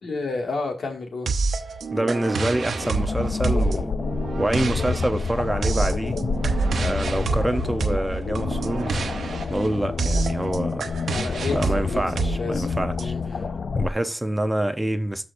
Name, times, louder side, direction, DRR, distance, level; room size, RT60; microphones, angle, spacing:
voice 1, 0.0-1.3 11.0-12.7 13.0-13.5, left 3 dB, 75° left, 2.1 m, -31 dB
sound 1, 1.3-13.0, right 4 dB, 85° right, 0.8 m, -28 dB
voice 2, 1.9-3.9 4.4-6.2 6.8-9.0 9.5-11.0 11.5-13.5 13.8-15.2, right 1 dB, 10° right, 0.7 m, -26 dB
sound 2, 2.8-13.9, left 5 dB, 60° left, 0.4 m, -28 dB
12.5 x 4.9 x 2.6 m
wide cardioid pair, 135°, 0 cm